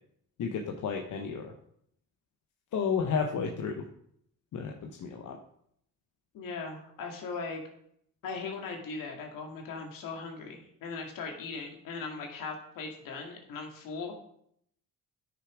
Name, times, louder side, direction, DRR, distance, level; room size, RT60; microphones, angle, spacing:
voice 1, 0.4-1.5 2.7-3.8 4.5-5.4, left 6 dB, 65° left, 2 dB, 1.1 m, -32 dB
voice 2, 6.3-7.6 8.2-14.1, left 4 dB, 80° left, 2 dB, 2.1 m, -39 dB
9.6 x 6.1 x 4.9 m, 0.70 s
cardioid pair, 80°, 33 cm